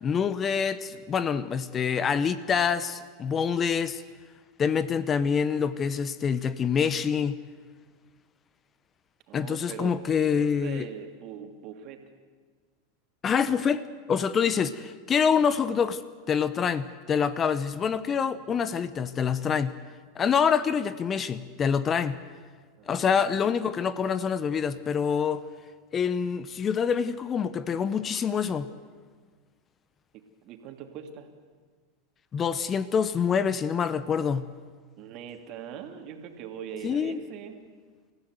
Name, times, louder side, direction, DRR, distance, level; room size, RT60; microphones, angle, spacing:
voice 1, 0.0-4.0 4.6-7.4 9.3-10.8 13.2-13.8 14.1-16.0 16.3-19.8 20.1-22.2 22.9-25.4 25.9-28.7 32.3-34.5 36.8-37.2, left 7 dB, 30° left, 1.0 m, -26 dB
voice 2, 9.3-10.0 10.4-12.1 22.8-23.7 30.1-31.3 35.0-37.6, right 8 dB, 50° right, 2.9 m, -42 dB
28.0 x 15.5 x 8.2 m
hypercardioid pair, 95°, 0 cm